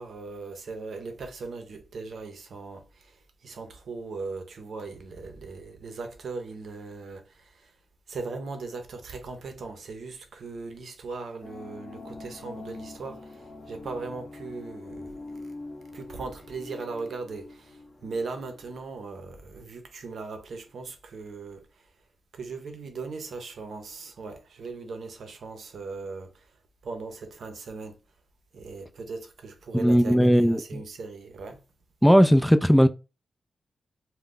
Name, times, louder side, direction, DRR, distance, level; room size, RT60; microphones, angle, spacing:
voice 1, 0.0-7.8 8.1-15.4 15.9-21.9 22.3-26.6 26.8-28.0 28.5-31.6, right 4 dB, 75° right, 0.6 m, -39 dB
sound 1, 11.4-18.8, left 2 dB, 60° left, 0.7 m, -44 dB
voice 2, 29.8-30.8 32.0-32.9, equal, ahead, 0.3 m, -18 dB
2.5 x 2.2 x 3.7 m
cardioid pair, 50°, 0 cm